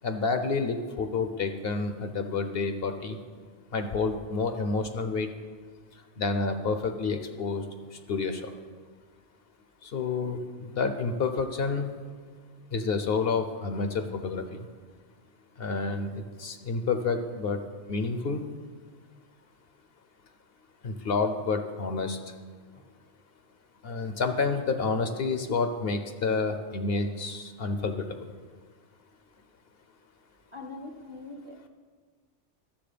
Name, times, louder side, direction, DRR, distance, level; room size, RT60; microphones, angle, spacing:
voice 1, 0.0-3.2 3.7-5.3 6.2-7.6 8.1-8.5 9.8-11.9 12.7-14.6 15.6-16.1 16.4-17.6 17.9-18.4 20.8-22.2 23.8-27.9, left 4 dB, 60° left, 8 dB, 0.9 m, -29 dB
voice 2, 30.5-31.7, left 2 dB, 30° right, 3 dB, 0.8 m, -43 dB
11.5 x 7.2 x 5.1 m, 1.5 s
omnidirectional pair, 1.2 m